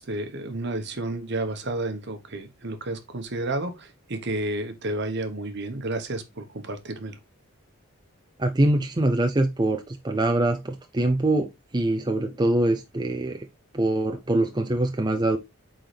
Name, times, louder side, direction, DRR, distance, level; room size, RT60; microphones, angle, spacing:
voice 1, 0.0-7.2, right 2 dB, 55° right, 1.2 m, -31 dB
voice 2, 8.4-13.4 13.7-15.4, right 1 dB, 20° right, 0.5 m, -24 dB
8.5 x 3.9 x 3.3 m
head